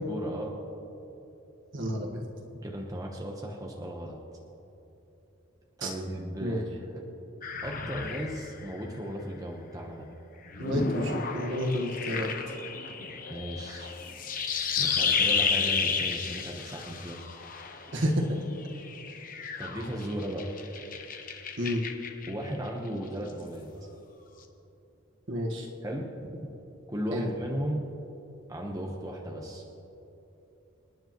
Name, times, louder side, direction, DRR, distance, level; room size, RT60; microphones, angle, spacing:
voice 1, 0.1-0.6 2.6-4.2 5.8-7.0 7.6-10.1 13.3-14.0 14.8-17.2 18.7-20.5 22.3-23.7 25.8-26.1 26.4-26.5 26.9-27.8 28.5-29.6, equal, 15° right, -1 dB, 1.0 m, -36 dB
voice 2, 1.7-2.3 5.8-5.9 6.4-6.6 10.6-12.3 17.9-18.4 21.6-21.8 25.3-25.7 27.1-27.3, equal, 60° right, 0 dB, 1.6 m, -30 dB
sound 1, 7.4-9.2 10.5-18.0 18.6-22.5, left 5 dB, 40° left, 0.8 m, -32 dB
27.5 x 9.8 x 3.1 m, 3.0 s
head